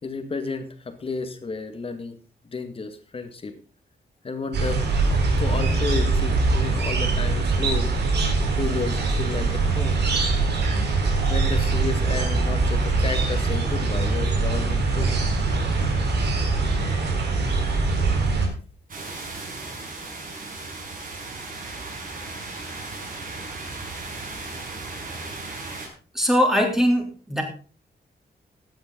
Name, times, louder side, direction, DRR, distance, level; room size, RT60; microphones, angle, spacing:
voice 1, 0.0-2.2 2.5-3.5 4.2-4.8 5.1-7.9 8.6-10.0 11.3-15.2, left 4 dB, 35° left, 8 dB, 1.9 m, -32 dB
sound 1, 4.5-18.5, right 3 dB, 80° right, 4.2 m, -22 dB
sound 2, 18.9-25.9, right 3 dB, 55° right, 5.7 m, -36 dB
voice 2, 26.1-27.4, equal, ahead, 2 dB, 3.3 m, -21 dB
15.5 x 10.5 x 3.9 m, 0.38 s
wide cardioid pair, 170°, 17 cm